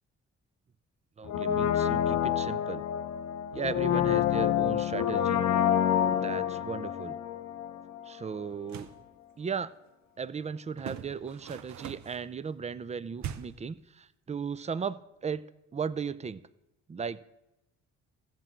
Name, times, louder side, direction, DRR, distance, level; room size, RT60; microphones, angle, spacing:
voice 1, 1.2-2.8 3.5-5.4 6.1-7.2 8.1-8.9 9.4-9.7 10.2-15.4 15.7-16.4 16.9-17.3, right 6 dB, 25° right, 16 dB, 0.4 m, -36 dB
Brass instrument, 1.3-8.1 8.4-8.5, left 10 dB, 65° left, 0.8 m, -28 dB
sound 1, 8.5-9.0 10.8-12.2 13.2-13.7, right 9 dB, 65° right, 0.7 m, -41 dB
14.5 x 7.4 x 4.5 m, 0.95 s
cardioid pair, 90°, 30 cm